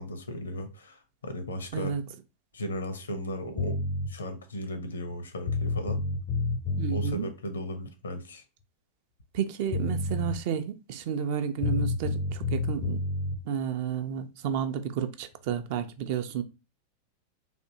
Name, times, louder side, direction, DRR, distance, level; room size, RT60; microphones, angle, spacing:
voice 1, 0.0-1.9 2.5-3.8 4.1-6.0 6.9-8.4, equal, 70° left, 0.7 m, -36 dB
sound 1, 3.6-4.1 5.1-5.2 5.5-7.1 9.4-9.5 9.7-10.4 11.6-13.4, left 2 dB, 30° left, 0.4 m, -29 dB
voice 2, 6.8-7.3 9.3-13.0 13.5-16.4, right 8 dB, 50° right, 0.4 m, -31 dB
3.4 x 2.6 x 2.7 m
figure-of-eight pair, 90°, 0 cm